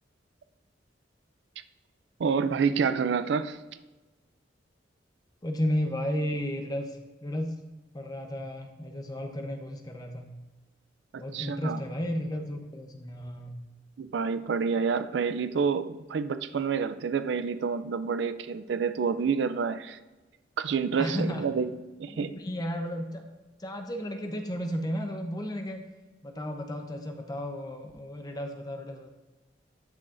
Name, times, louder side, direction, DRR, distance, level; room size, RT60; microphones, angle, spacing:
voice 1, 2.2-3.6 11.1-11.8 14.0-20.0 20.6-21.7 22.0-22.3, right 6 dB, 65° right, 12 dB, 0.4 m, -28 dB
voice 2, 5.4-7.6 7.9-10.4 11.2-13.6 21.0-21.4 22.1-23.2 23.6-25.9 26.2-29.1, equal, 20° left, 4 dB, 0.7 m, -33 dB
12.0 x 6.1 x 2.5 m, 1.2 s
head